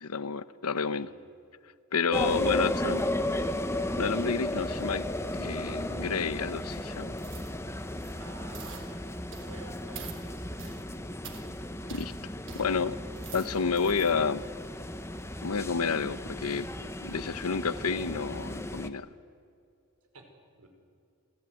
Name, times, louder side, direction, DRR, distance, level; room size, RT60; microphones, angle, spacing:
voice 1, 0.0-1.1 1.9-3.0 4.0-5.0 5.3-7.1 11.9-12.1 12.6-13.0 13.3-14.4 15.4-16.7 17.0-19.1, left 5 dB, 80° left, 15 dB, 0.9 m, -30 dB
sound 1, 2.1-18.9, left 1 dB, 10° left, 1.1 m, -34 dB
voice 2, 2.5-3.5 8.2-9.1 9.4-10.6 12.6-13.0 20.1-20.3 20.6-20.7, right 2 dB, 90° right, 4 dB, 5.2 m, -50 dB
sound 2, 7.2-7.5 7.9-8.2 8.5-8.9 9.3-9.6 9.9-10.2 10.6-10.8 11.2-11.4 11.9-12.1 12.5-12.6 13.0-14.1 14.6-14.7, right 6 dB, 55° right, 3.5 m, -46 dB
28.5 x 18.5 x 9.4 m, 2.4 s
head